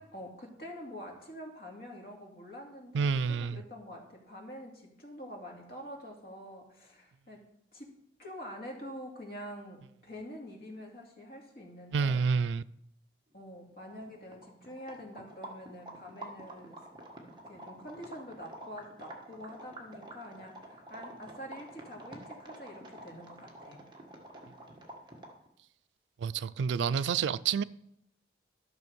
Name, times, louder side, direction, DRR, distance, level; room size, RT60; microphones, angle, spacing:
voice 1, 0.0-7.4 7.7-7.9 8.2-12.3 13.3-16.8 17.5-23.8, equal, 55° left, 2.4 m, -46 dB
voice 2, 2.9-3.6 11.9-12.6 26.2-27.6, right 6 dB, 90° right, 0.3 m, -29 dB
sound 1, 13.5-13.6 13.7-25.5, right 1 dB, 25° right, 1.4 m, -48 dB
12.5 x 6.2 x 5.2 m
head